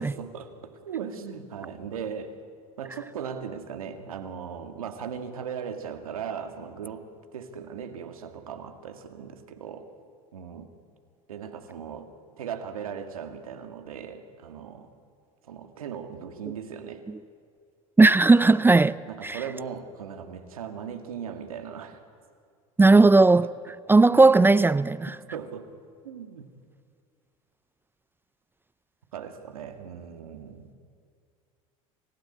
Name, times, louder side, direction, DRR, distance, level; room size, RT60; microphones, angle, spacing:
voice 1, 0.0-2.3 2.8-7.0 7.3-9.9 10.3-10.7 11.3-12.1 12.4-14.9 15.4-17.0 18.5-22.0 23.4-23.5 24.1-24.3 25.1-25.7 26.0-26.5 29.1-30.7, right 7 dB, 90° right, 2.1 m, -38 dB
voice 2, 18.0-19.0 19.2-19.4 22.8-23.5 23.9-25.1, right 3 dB, 10° right, 0.5 m, -17 dB
26.5 x 16.0 x 9.8 m
hypercardioid pair, 80°, 18 cm